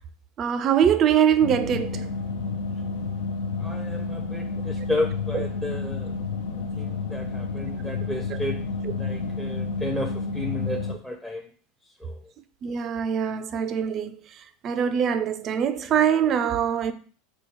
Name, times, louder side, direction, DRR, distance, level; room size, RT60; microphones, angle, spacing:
voice 1, 0.4-2.0 5.3-5.4 8.3-8.4 12.6-14.1 14.6-16.9, right 8 dB, 40° right, 0.4 m, -23 dB
sound 1, 1.4-10.9, left 4 dB, 75° left, 0.5 m, -30 dB
voice 2, 3.6-6.1 6.8-8.6 8.9-11.5 12.0-12.2, left 1 dB, 5° left, 0.6 m, -32 dB
4.5 x 2.3 x 4.2 m
hypercardioid pair, 90°, 0 cm